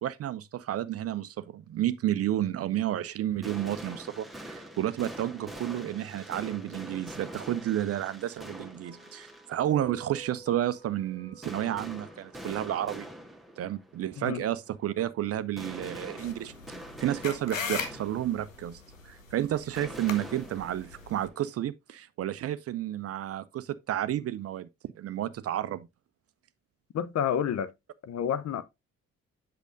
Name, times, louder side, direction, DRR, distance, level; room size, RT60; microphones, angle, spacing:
voice 1, 0.0-13.0 13.6-16.5 17.0-24.7 25.0-25.9, right 12 dB, 40° right, 0.5 m, -31 dB
sound 1, 3.2-21.5, right 1 dB, ahead, 1.4 m, -45 dB
sound 2, 8.8-13.2, right 2 dB, 75° left, 4.4 m, -50 dB
sound 3, 16.2-21.3, left 5 dB, 90° left, 0.6 m, -39 dB
voice 2, 26.9-27.7 28.0-28.6, left 8 dB, 45° left, 0.7 m, -29 dB
8.1 x 6.5 x 2.5 m
figure-of-eight pair, 40°, 38 cm